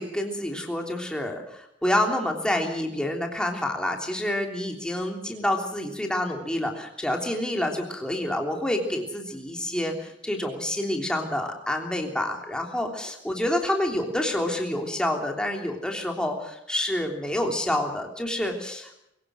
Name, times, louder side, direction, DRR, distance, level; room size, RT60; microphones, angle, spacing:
voice 1, 0.0-19.0, left 1 dB, 5° left, 2 dB, 3.3 m, -28 dB
24.0 x 16.5 x 7.7 m, 0.80 s
head